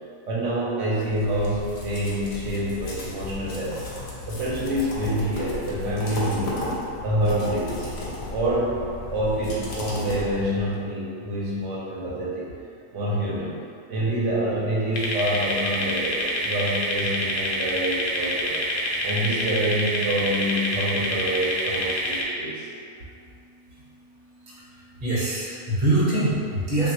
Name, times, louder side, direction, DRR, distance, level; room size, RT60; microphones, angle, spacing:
voice 1, 0.3-3.8 4.3-6.7 7.0-7.9 8.3-8.8 9.1-12.5 12.9-13.6 13.9-18.6 19.0-22.7, right 1 dB, 70° right, -6 dB, 0.9 m, -26 dB
sound 1, 1.0-10.8, left 2 dB, 85° left, 1.1 m, -34 dB
sound 2, 15.0-22.2, equal, 65° left, 0.5 m, -27 dB
voice 2, 24.8-26.9, right 2 dB, 35° right, -8 dB, 0.8 m, -24 dB
3.1 x 2.6 x 2.8 m, 2.4 s
omnidirectional pair, 1.3 m